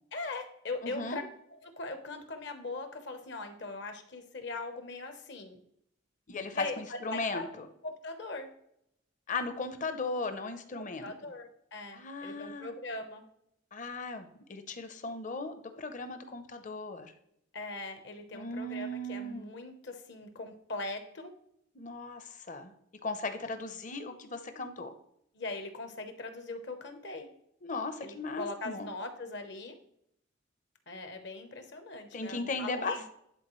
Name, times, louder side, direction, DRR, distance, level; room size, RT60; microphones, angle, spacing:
voice 1, 0.1-1.2 1.8-5.6 6.5-7.5 7.8-8.5 10.8-13.2 17.5-21.3 25.3-27.3 28.0-29.7 30.9-33.0, left 3 dB, 65° left, 7 dB, 1.0 m, -40 dB
voice 2, 0.8-1.2 6.3-7.7 9.3-11.3 11.9-12.7 13.7-17.1 18.3-19.5 21.8-22.7 23.0-24.9 27.6-28.9 32.1-33.0, left 2 dB, 40° left, 9 dB, 0.7 m, -37 dB
10.0 x 4.1 x 3.1 m, 0.75 s
head